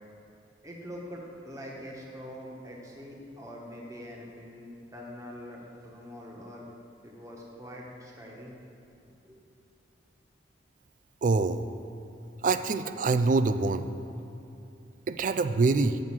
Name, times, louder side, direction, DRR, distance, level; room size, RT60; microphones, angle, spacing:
voice 1, 0.6-6.7 7.0-8.6 9.2-9.4, equal, 15° right, -2 dB, 1.2 m, -44 dB
voice 2, 11.2-11.6 12.4-13.9 15.1-16.0, right 3 dB, 40° right, 10 dB, 0.3 m, -25 dB
7.5 x 6.3 x 7.3 m, 2.7 s
head